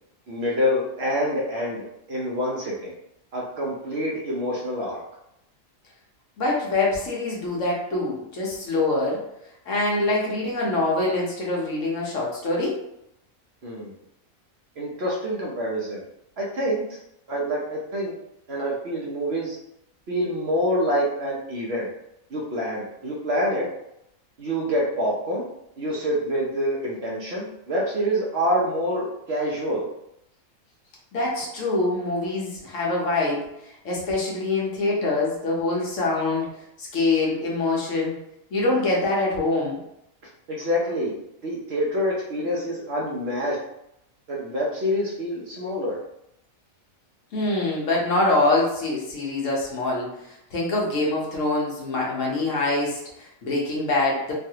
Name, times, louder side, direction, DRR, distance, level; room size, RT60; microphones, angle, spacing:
voice 1, 0.3-1.8 2.1-2.9 3.3-5.0 13.6-13.9 14.8-16.0 16.4-16.8 17.3-18.1 18.5-19.6 20.1-21.9 22.3-23.7 24.4-25.4 25.8-29.9 40.5-41.1 41.4-43.6 44.3-46.0, equal, 60° right, -3 dB, 0.8 m, -26 dB
voice 2, 6.4-9.2 9.7-12.8 31.1-36.5 36.8-38.2 38.5-39.8 47.3-50.1 50.5-54.3, left 2 dB, 65° left, -3 dB, 1.2 m, -24 dB
3.2 x 2.4 x 2.7 m, 0.80 s
omnidirectional pair, 1.4 m